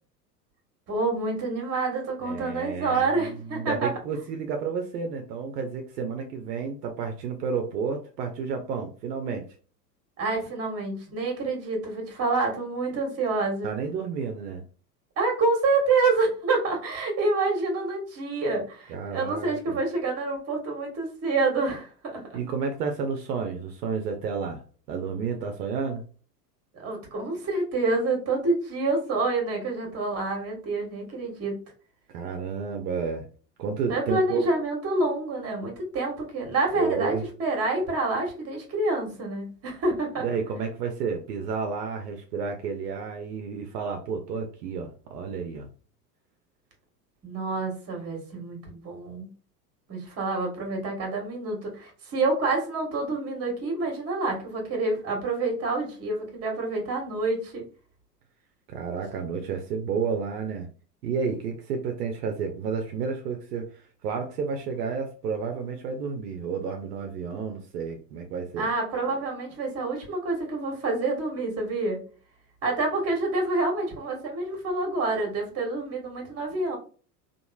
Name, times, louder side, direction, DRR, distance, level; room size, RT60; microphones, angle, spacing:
voice 1, 0.9-3.9 10.2-13.8 15.2-22.4 26.7-31.6 33.9-40.2 47.2-49.3 49.9-57.7 68.6-72.0 72.6-76.8, right 3 dB, 30° right, 2 dB, 1.3 m, -27 dB
voice 2, 2.2-3.1 3.5-9.5 13.6-14.6 18.9-19.8 22.3-24.6 24.9-26.0 32.1-33.3 33.6-34.5 36.7-37.2 40.2-45.7 58.7-60.7 61.0-68.7, right 5 dB, 70° right, 4 dB, 0.7 m, -31 dB
3.0 x 2.5 x 2.3 m, 0.39 s
hypercardioid pair, 90°, 50 cm